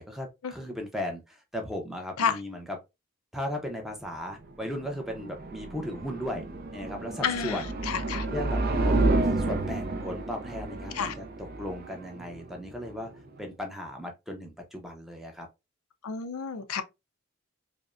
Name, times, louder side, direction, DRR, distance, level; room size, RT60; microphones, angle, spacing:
voice 1, 0.0-2.6 3.3-6.5 6.7-8.0 8.3-11.2 11.6-15.5, left 1 dB, ahead, 0.6 m, -36 dB
sound 1, 4.4-13.4, right 2 dB, 45° right, 0.4 m, -30 dB
voice 2, 7.2-8.3 10.9-11.2 16.0-16.8, left 6 dB, 85° left, 0.5 m, -30 dB
5.0 x 2.1 x 2.4 m
head